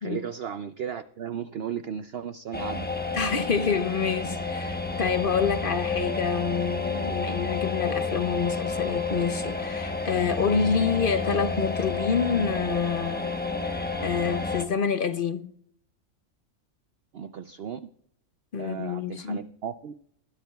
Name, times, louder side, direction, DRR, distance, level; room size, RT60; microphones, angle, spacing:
voice 1, 0.0-2.9 17.1-17.9 18.6-19.9, right 8 dB, 60° right, 0.7 m, -35 dB
sound 1, 2.5-14.6, left 3 dB, 10° left, 0.7 m, -30 dB
voice 2, 3.1-13.3 13.6-15.5 18.5-19.5, left 6 dB, 50° left, 0.7 m, -27 dB
20.0 x 13.0 x 2.3 m
omnidirectional pair, 1.5 m